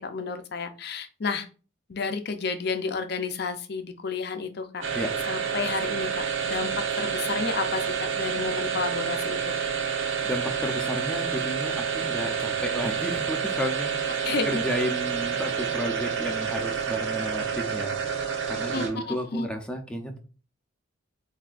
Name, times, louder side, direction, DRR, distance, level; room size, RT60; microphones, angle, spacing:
voice 1, 0.0-1.5 1.9-4.8 5.3-6.1 6.4-6.7 7.0-7.8 8.1-9.4 14.3-14.6 18.7-19.5, left 4 dB, 50° left, 8 dB, 0.5 m, -31 dB
sound 1, 4.8-19.1, right 7 dB, 65° right, 1.1 m, -29 dB
voice 2, 10.2-18.0 18.5-20.2, equal, 5° left, 3 dB, 0.7 m, -32 dB
7.5 x 2.7 x 2.5 m, 0.35 s
head